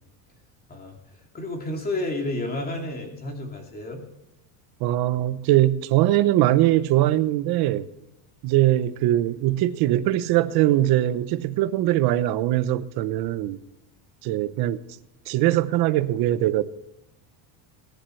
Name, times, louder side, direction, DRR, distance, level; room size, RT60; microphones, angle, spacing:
voice 1, 0.7-4.0, left 2 dB, 20° left, 2.7 m, -31 dB
voice 2, 4.8-7.9 8.4-13.6 14.2-14.8 15.3-16.6, right 14 dB, 50° right, 0.8 m, -21 dB
20.5 x 10.5 x 3.2 m
cardioid pair, 170°, 50 cm